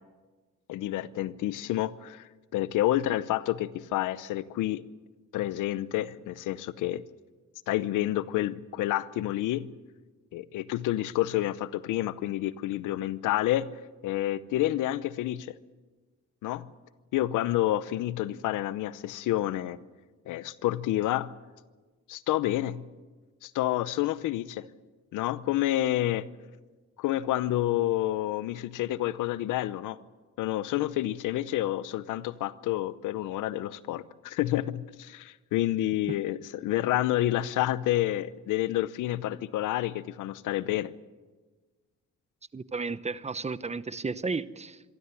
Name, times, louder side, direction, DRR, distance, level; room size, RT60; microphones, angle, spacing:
voice 1, 0.7-4.8 5.3-7.0 7.7-9.7 10.3-13.7 14.0-15.5 16.4-16.7 17.1-19.8 20.3-21.3 22.1-22.8 23.4-24.7 25.1-26.3 27.0-30.0 30.4-40.9, left 14 dB, 90° left, 17 dB, 0.9 m, -29 dB
voice 2, 42.5-44.8, right 4 dB, 20° right, 15 dB, 0.9 m, -33 dB
25.5 x 13.0 x 9.8 m, 1.3 s
cardioid pair, 90°, 30 cm